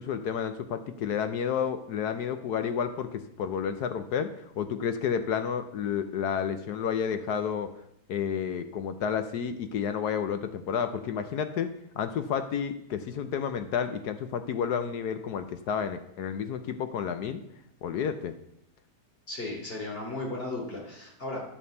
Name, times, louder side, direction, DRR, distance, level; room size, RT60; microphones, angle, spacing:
voice 1, 0.0-7.7 8.1-17.4 17.8-18.3, left 7 dB, 80° left, 9 dB, 1.3 m, -31 dB
voice 2, 19.3-21.4, left 2 dB, 35° left, -1 dB, 3.1 m, -35 dB
11.5 x 5.4 x 7.9 m, 0.77 s
omnidirectional pair, 1.7 m